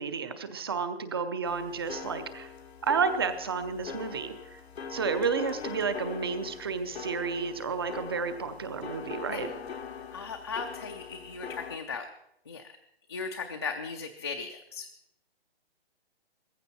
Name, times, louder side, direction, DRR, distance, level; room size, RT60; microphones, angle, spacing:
voice 1, 0.0-2.5 2.8-4.6 4.9-9.5, right 5 dB, 25° right, 11 dB, 0.7 m, -31 dB
sound 1, 1.4-11.8, left 6 dB, 85° left, 1.3 m, -42 dB
voice 2, 10.1-12.1 12.5-12.6 13.1-14.9, left 5 dB, 25° left, 3 dB, 0.5 m, -37 dB
16.0 x 15.0 x 4.2 m, 0.79 s
hypercardioid pair, 175°, 31 cm